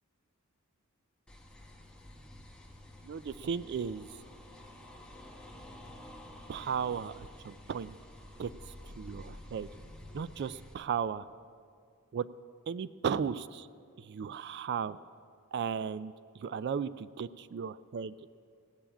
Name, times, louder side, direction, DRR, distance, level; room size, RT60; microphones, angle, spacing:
sound 1, 1.3-10.7, left 1 dB, 5° left, 1.1 m, -50 dB
voice 1, 3.0-4.1 6.5-8.0 8.4-8.5 9.0-9.7 10.1-11.2 12.1-12.3 12.7-13.7 14.0-15.0 15.5-16.1 16.4-18.1, right 7 dB, 50° right, 16 dB, 0.3 m, -35 dB
16.5 x 7.1 x 8.8 m, 2.3 s
head